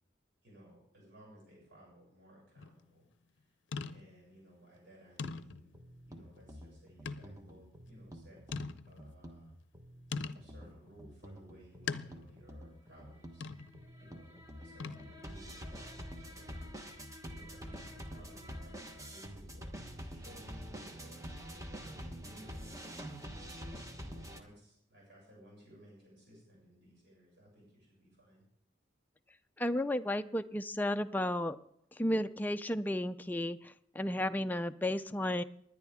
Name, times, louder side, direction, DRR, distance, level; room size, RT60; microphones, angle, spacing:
voice 1, 0.4-3.5 3.9-5.7 6.0-8.4 8.8-9.5 10.3-13.5 14.0-22.7 23.5-28.4, equal, 65° right, -4 dB, 6.8 m, -60 dB
sound 1, 2.6-2.8 3.7-4.3 4.8-4.9 5.2-5.8 7.1-7.4 7.9-8.0 8.5-9.1 10.1-10.6 11.9-12.4 13.4-13.8 14.8-15.3, left 4 dB, 75° left, 0.6 m, -41 dB
sound 2, 5.2-24.4, equal, 15° right, 1.1 m, -47 dB
voice 2, 29.6-31.6 32.0-35.4, left 1 dB, 10° left, 8 dB, 0.4 m, -33 dB
20.5 x 10.0 x 3.6 m, 0.71 s
head